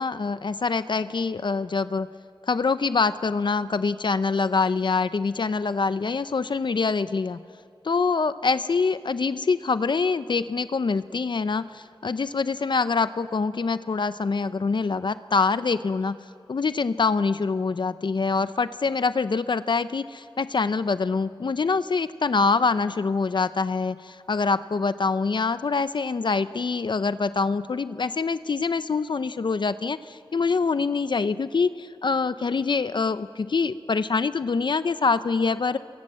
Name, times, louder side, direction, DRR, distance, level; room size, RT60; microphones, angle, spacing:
voice 1, 0.0-2.1 2.5-7.4 7.8-16.2 16.5-35.8, left 4 dB, 60° left, 13 dB, 0.6 m, -25 dB
28.5 x 23.5 x 7.5 m, 2.4 s
wide cardioid pair, 80°, 9 cm